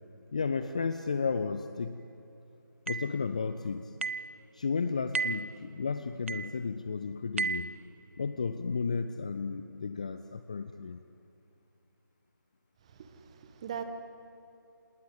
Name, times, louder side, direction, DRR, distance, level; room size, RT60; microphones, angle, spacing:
voice 1, 0.3-2.0 2.9-3.9 4.5-7.7 8.2-11.0, left 5 dB, 20° left, 10 dB, 0.5 m, -33 dB
sound 1, 2.9-3.1 4.0-4.3 5.1-5.5 6.3-6.6 7.4-7.7, right 4 dB, 35° right, 0.7 m, -33 dB
voice 2, 12.8-13.8, right 8 dB, 20° right, 7 dB, 1.4 m, -41 dB
27.0 x 19.5 x 9.4 m, 2.8 s
figure-of-eight pair, 155°, 11 cm